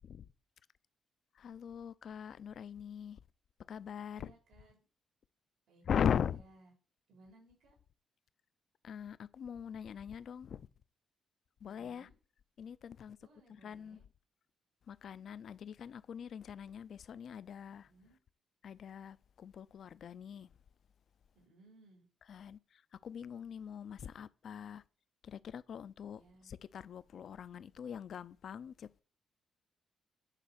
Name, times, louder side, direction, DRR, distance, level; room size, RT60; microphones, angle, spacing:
voice 1, 1.3-3.2 3.7-4.3 5.9-6.4 8.8-10.7 11.6-12.1 12.6-13.2 13.5-14.0 14.9-17.9 18.6-20.5 22.3-24.8 25.2-29.0, left 8 dB, 60° left, 0.5 m, -41 dB
voice 2, 4.1-4.8 5.7-6.0 6.3-6.7 7.1-7.7 11.6-12.1 13.2-14.0 17.8-18.2 21.3-22.1 26.1-26.5, right 2 dB, 85° right, 4.0 m, -62 dB
9.1 x 4.1 x 7.1 m
cardioid pair, 115°, 0 cm